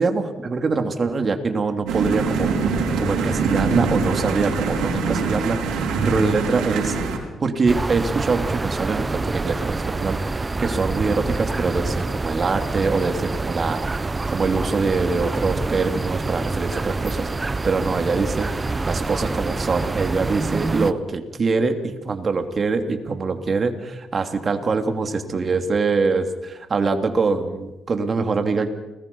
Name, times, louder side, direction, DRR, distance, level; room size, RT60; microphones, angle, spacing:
voice 1, 0.0-6.9 7.4-18.5 18.8-28.7, right 4 dB, 40° right, 6 dB, 2.9 m, -24 dB
sound 1, 1.9-7.2, right 4 dB, 90° right, 5.2 m, -23 dB
sound 2, 7.7-20.9, right 3 dB, 25° right, 0.9 m, -26 dB
30.0 x 20.5 x 5.5 m, 1.1 s
cardioid pair, 90°, 0 cm